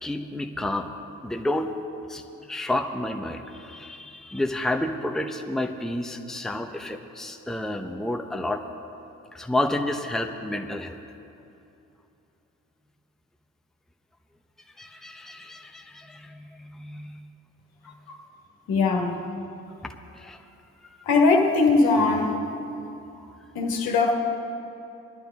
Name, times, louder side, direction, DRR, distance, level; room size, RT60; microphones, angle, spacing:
voice 1, 0.0-0.9 1.2-1.7 2.1-8.6 9.3-11.0 14.8-17.2 17.8-17.9 19.8-20.4 20.8-21.0, left 1 dB, ahead, 4 dB, 0.9 m, -30 dB
voice 2, 18.7-19.2 21.1-22.5 23.6-24.2, left 3 dB, 65° left, 1 dB, 1.7 m, -21 dB
20.5 x 11.5 x 3.6 m, 2.8 s
hypercardioid pair, 40°, 38 cm